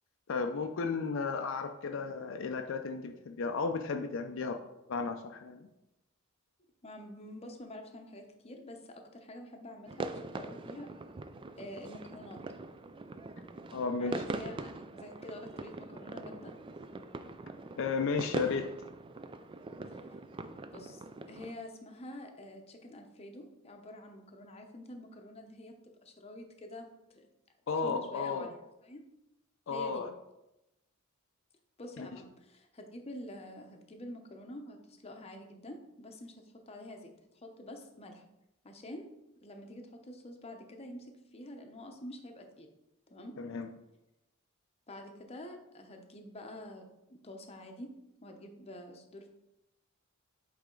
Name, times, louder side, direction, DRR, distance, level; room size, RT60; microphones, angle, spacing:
voice 1, 0.3-4.6 4.9-5.7 13.7-14.2 17.8-18.7 27.7-28.5 29.7-30.1 32.0-32.1 43.4-43.7, left 4 dB, 65° left, 5 dB, 0.4 m, -34 dB
voice 2, 6.8-10.9 11.6-12.4 14.0-16.5 19.9-20.0 20.7-21.0 21.3-25.7 26.0-27.3 27.8-29.0 29.7-30.0 31.8-36.3 36.7-38.2 38.6-39.1 39.4-42.7 43.1-43.4 44.9-46.8 47.1-47.9 48.2-49.3, left 1 dB, 30° left, 4 dB, 0.7 m, -47 dB
sound 1, 9.9-21.5, right 3 dB, 25° right, 0.3 m, -42 dB
8.1 x 3.4 x 3.7 m, 0.91 s
head